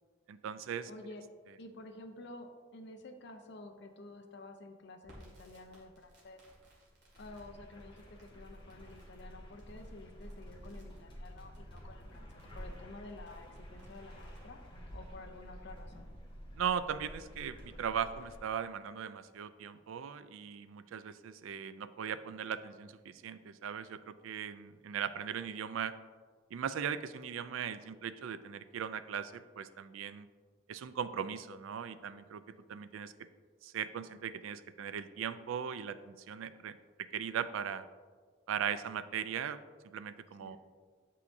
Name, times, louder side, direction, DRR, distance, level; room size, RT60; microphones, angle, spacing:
voice 1, 0.3-0.9 16.6-25.9 26.5-30.3 30.7-32.4 32.7-33.1 33.6-36.8 37.1-37.8 38.5-39.6 39.8-40.6, right 8 dB, 85° right, 13 dB, 0.4 m, -38 dB
voice 2, 0.9-1.2 1.6-6.4 7.2-12.2 12.5-14.6 14.9-16.1 40.4-40.6, left 2 dB, 60° left, 5 dB, 0.7 m, -51 dB
Crackle, 5.0-14.5, equal, 60° right, 1.9 m, -62 dB
sound 1, 7.1-18.4, equal, 25° left, 1.2 m, -50 dB
8.2 x 5.6 x 2.6 m, 1.5 s
head